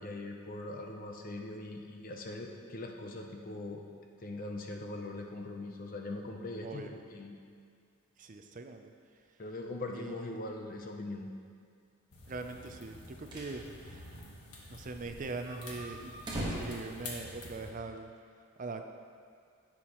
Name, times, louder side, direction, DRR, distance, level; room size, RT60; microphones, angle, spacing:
voice 1, 0.0-3.8 4.2-7.4 9.4-11.3, left 2 dB, 40° left, 2 dB, 0.7 m, -41 dB
voice 2, 8.2-8.9 9.9-10.4 12.3-14.1 14.7-18.1 18.6-18.8, right 3 dB, 35° right, 5 dB, 0.5 m, -42 dB
sound 1, 12.1-17.7, left 2 dB, 85° left, 1.5 m, -49 dB
sound 2, 13.1-13.6 13.9-14.0 14.2-14.3 14.8-17.8, right 1 dB, 20° right, 1.4 m, -41 dB
10.5 x 7.3 x 3.0 m, 2.2 s
head